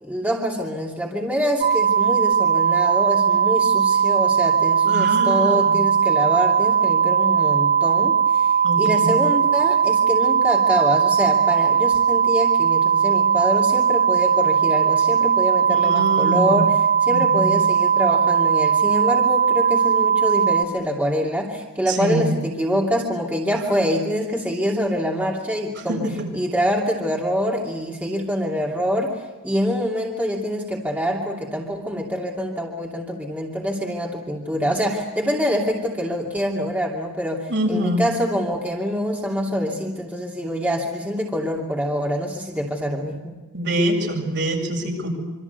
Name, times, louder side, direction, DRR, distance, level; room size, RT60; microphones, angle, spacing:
voice 1, 0.0-8.5 8.8-26.0 26.3-43.3, equal, 5° right, -2 dB, 2.7 m, -25 dB
sound 1, 1.6-20.6, right 7 dB, 35° right, 1.9 m, -19 dB
voice 2, 4.9-5.7 8.6-9.1 15.7-16.6 17.1-17.5 21.9-22.3 25.9-26.3 37.5-38.1 43.5-45.1, right 1 dB, 55° right, 2 dB, 7.6 m, -25 dB
26.5 x 26.0 x 8.2 m, 1.2 s
head